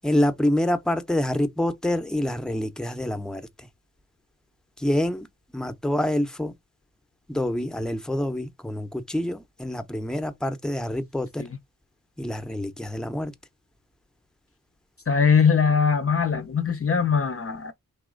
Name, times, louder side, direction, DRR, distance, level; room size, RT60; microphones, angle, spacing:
voice 1, 0.0-3.5 4.8-5.3 5.5-6.5 7.3-11.4 12.2-13.3, left 1 dB, ahead, 0.7 m, -26 dB
voice 2, 15.1-17.7, left 6 dB, 40° left, 0.5 m, -21 dB
4.2 x 3.0 x 3.7 m
wide cardioid pair, 80°, 36 cm